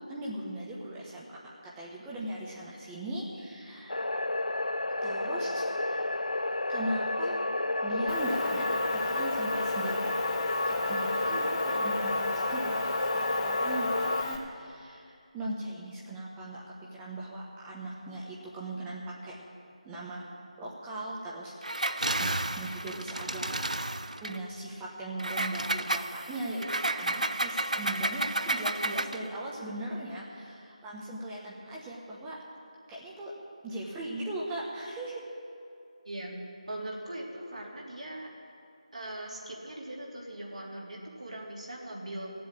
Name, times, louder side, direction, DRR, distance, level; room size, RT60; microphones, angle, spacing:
voice 1, 0.0-1.4 1.6-4.0 5.0-6.1 6.7-7.4 7.8-10.2 10.7-19.4 19.8-20.3 20.6-23.6 24.2-32.4 32.9-33.3 33.6-35.2, right 1 dB, 10° right, -4 dB, 1.0 m, -39 dB
sound 1, 3.9-14.2, left 2 dB, 90° left, 0.5 m, -30 dB
Motor vehicle (road) / Engine, 8.1-14.4, left 3 dB, 20° left, 0.9 m, -36 dB
Engine, 21.6-24.4 25.2-29.3, right 2 dB, 85° right, 0.7 m, -31 dB
voice 2, 36.0-36.4 36.7-38.3 38.9-42.3, right 1 dB, 70° right, -3 dB, 3.3 m, -40 dB
15.5 x 7.7 x 8.5 m, 2.5 s
figure-of-eight pair, 160°, 4 cm